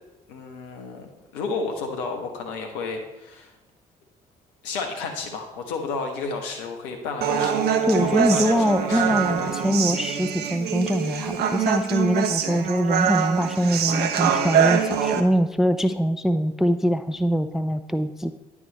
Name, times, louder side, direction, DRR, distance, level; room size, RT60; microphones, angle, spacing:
voice 1, 0.3-3.5 4.6-7.7 8.0-9.6, left 4 dB, 70° left, 4 dB, 1.2 m, -32 dB
Human voice, 7.2-15.2, right 8 dB, 55° right, 0.7 m, -24 dB
voice 2, 7.9-18.3, equal, ahead, 10 dB, 0.4 m, -23 dB
10.0 x 4.8 x 4.0 m, 1.0 s
figure-of-eight pair, 50°, 20 cm